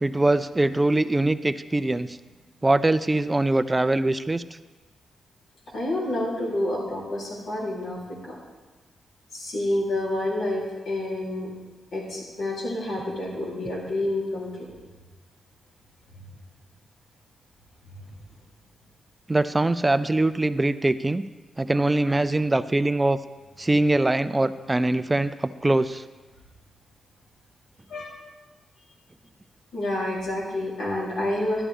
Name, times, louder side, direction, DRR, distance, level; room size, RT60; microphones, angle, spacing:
voice 1, 0.0-2.2 2.6-4.4 19.3-21.2 21.6-23.2 23.6-26.0, right 2 dB, 20° right, 14 dB, 0.4 m, -22 dB
voice 2, 5.7-8.4 9.3-11.5 11.9-14.7 16.1-16.2 27.9-28.1 29.7-31.6, left 1 dB, 80° left, -5 dB, 3.7 m, -28 dB
12.0 x 10.0 x 3.5 m, 1.2 s
cardioid pair, 75°, 0 cm